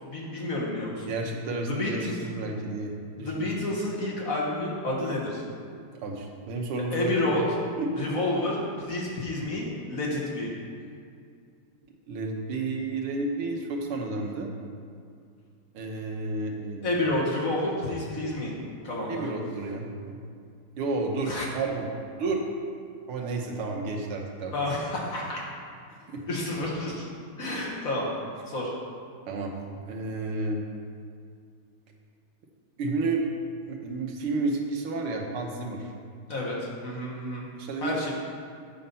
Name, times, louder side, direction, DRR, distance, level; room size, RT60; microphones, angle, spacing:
voice 1, 0.0-1.1 1.7-2.1 3.2-5.4 6.9-7.5 8.0-10.5 16.8-18.5 18.8-19.2 21.2-21.4 24.5-25.4 26.3-27.1 27.4-28.1 28.5-28.7 36.3-37.5 37.8-38.1, left 1 dB, 45° left, -4 dB, 1.5 m, -29 dB
voice 2, 1.1-3.5 6.0-7.1 7.8-7.9 12.1-14.5 15.7-17.0 19.1-20.2 20.8-21.9 22.2-22.5 23.1-24.7 25.9-26.2 29.3-29.5 29.9-30.6 32.8-33.2 33.7-35.9 37.6-38.1, right 3 dB, 90° right, 1 dB, 1.9 m, -31 dB
7.7 x 5.6 x 5.4 m, 2.3 s
omnidirectional pair, 2.3 m